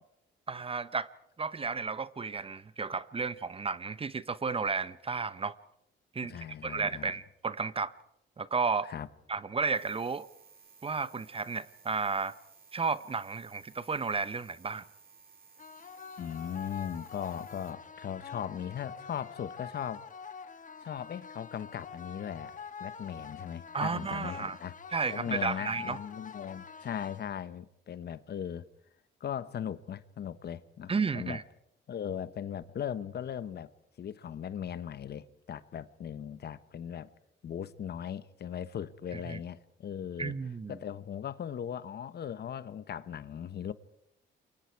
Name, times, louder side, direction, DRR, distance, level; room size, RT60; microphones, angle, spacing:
voice 1, 0.5-1.1 1.4-5.6 6.1-7.9 8.4-8.9 9.3-10.3 10.8-12.3 12.7-14.8 23.7-24.6 24.9-26.0 30.9-31.4 39.1-39.4 40.2-40.8, right 4 dB, 30° right, 0.9 m, -33 dB
voice 2, 6.2-7.2 8.8-9.1 16.2-20.1 20.8-24.7 25.1-28.7 29.2-31.4 31.9-33.7 34.0-37.1 37.4-40.3 40.7-43.7, left 9 dB, 55° left, 1.1 m, -38 dB
sound 1, 9.7-17.7, right 5 dB, 50° right, 5.1 m, -58 dB
sound 2, 15.6-27.6, left 6 dB, 40° left, 1.3 m, -46 dB
28.0 x 24.0 x 4.7 m
cardioid pair, 90°, 20 cm